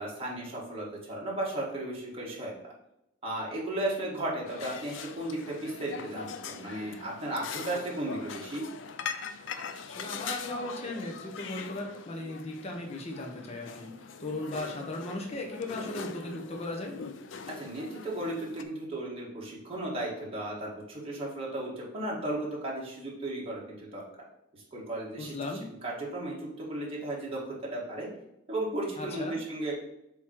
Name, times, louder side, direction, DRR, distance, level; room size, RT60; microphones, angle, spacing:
voice 1, 0.0-2.5 3.2-8.7 17.6-24.0 24.5-25.3 25.8-28.1 28.5-29.8, right 1 dB, 30° right, -5 dB, 1.9 m, -35 dB
sound 1, 4.5-18.6, left 6 dB, 70° left, 0.5 m, -42 dB
voice 2, 9.9-17.0 25.2-25.7 29.0-29.4, left 2 dB, 30° left, 0 dB, 0.9 m, -37 dB
7.4 x 3.1 x 4.5 m, 0.82 s
head